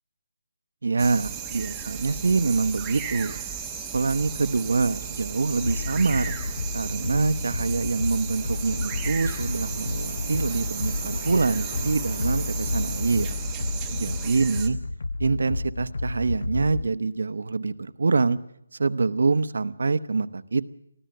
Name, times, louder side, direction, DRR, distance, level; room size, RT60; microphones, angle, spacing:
voice 1, 0.8-3.4 3.9-6.3 6.7-13.4 13.9-14.8 15.2-18.4 18.8-20.7, right 4 dB, 60° right, 13 dB, 0.9 m, -25 dB
sound 1, 1.0-14.7, right 7 dB, 5° right, 0.9 m, -35 dB
sound 2, 3.9-14.6, left 3 dB, 45° left, 3.5 m, -45 dB
sound 3, 5.6-16.9, left 3 dB, 65° left, 0.8 m, -31 dB
24.0 x 15.0 x 7.8 m, 0.76 s
hypercardioid pair, 180°, 0 cm